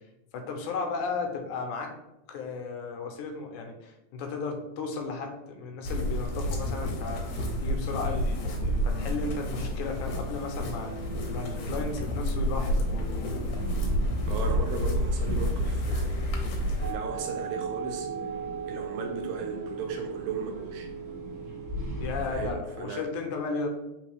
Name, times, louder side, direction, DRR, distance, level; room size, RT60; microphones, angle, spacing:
voice 1, 0.3-1.9 2.3-13.2 22.0-23.7, left 4 dB, 85° left, 4 dB, 2.1 m, -35 dB
sound 1, 5.8-16.9, equal, 70° left, 1.7 m, -29 dB
sound 2, 7.0-22.5, equal, 45° right, 2.0 m, -40 dB
voice 2, 14.3-18.1 18.7-20.9 22.3-22.5 22.8-23.1, right 5 dB, 80° right, 3 dB, 1.9 m, -36 dB
sound 3, 16.8-22.2, right 7 dB, 40° left, 0.7 m, -38 dB
4.5 x 3.6 x 3.2 m, 0.94 s
omnidirectional pair, 3.5 m